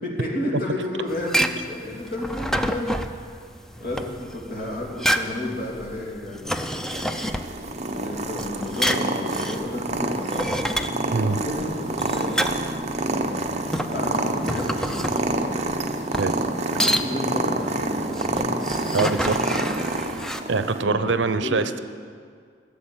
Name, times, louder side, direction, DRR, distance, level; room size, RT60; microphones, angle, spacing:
voice 1, 0.0-2.9 3.8-6.9 8.0-10.8 11.3-12.9 13.9-15.7 16.7-18.2 20.9-21.1 21.4-21.5, left 1 dB, 50° left, -3 dB, 3.0 m, -32 dB
sound 1, 1.1-20.4, equal, 5° left, 0.5 m, -29 dB
Purr, 6.9-20.8, right 2 dB, 35° right, 0.8 m, -28 dB
voice 2, 18.9-19.4 20.5-21.8, right 4 dB, 75° right, 11 dB, 0.7 m, -23 dB
15.0 x 7.2 x 8.9 m, 2.1 s
head